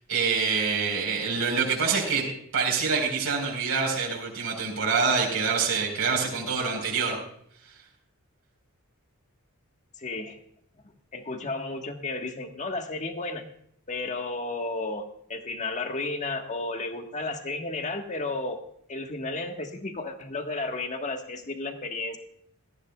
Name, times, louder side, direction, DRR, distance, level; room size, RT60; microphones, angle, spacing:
voice 1, 0.1-2.2 2.5-7.2, right 5 dB, 75° right, -1 dB, 4.4 m, -26 dB
voice 2, 10.0-10.4 11.1-13.4 13.9-18.6 18.9-22.2, left 2 dB, 35° left, 5 dB, 1.5 m, -33 dB
18.0 x 14.0 x 2.4 m, 0.67 s
head